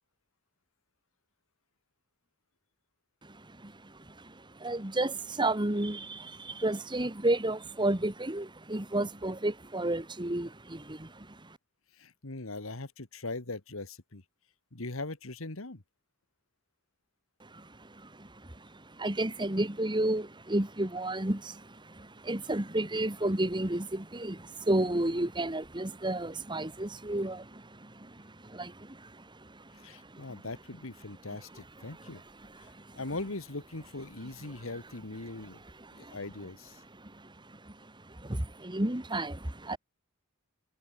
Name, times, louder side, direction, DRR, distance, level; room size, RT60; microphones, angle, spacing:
voice 1, 3.2-11.6 17.4-30.4 31.5-33.0 35.8-36.2 36.9-39.8, right 1 dB, 20° right, 1.9 m, -33 dB
voice 2, 12.0-14.2 14.7-15.8 29.8-32.2 32.6-32.7 33.0-35.6 35.9-36.8, left 2 dB, 70° left, 1.9 m, -40 dB
head